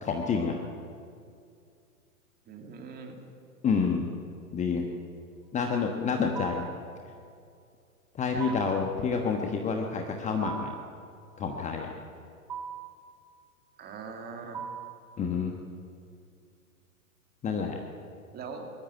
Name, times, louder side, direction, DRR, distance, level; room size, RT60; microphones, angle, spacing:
voice 1, 0.0-0.6 3.6-4.1 4.5-4.8 5.5-6.7 8.1-10.7 11.4-11.9 15.2-15.6 17.4-17.8, left 5 dB, 15° left, 3 dB, 1.2 m, -28 dB
voice 2, 2.5-3.2 8.3-8.6 13.8-14.6 18.3-18.7, right 5 dB, 20° right, 3 dB, 2.5 m, -41 dB
sound 1, 6.3-6.8 8.4-8.9 10.4-10.9 12.5-13.0 14.5-15.0, right 7 dB, 5° right, 0.4 m, -38 dB
21.0 x 14.0 x 9.0 m, 2.4 s
figure-of-eight pair, 110°, 45 cm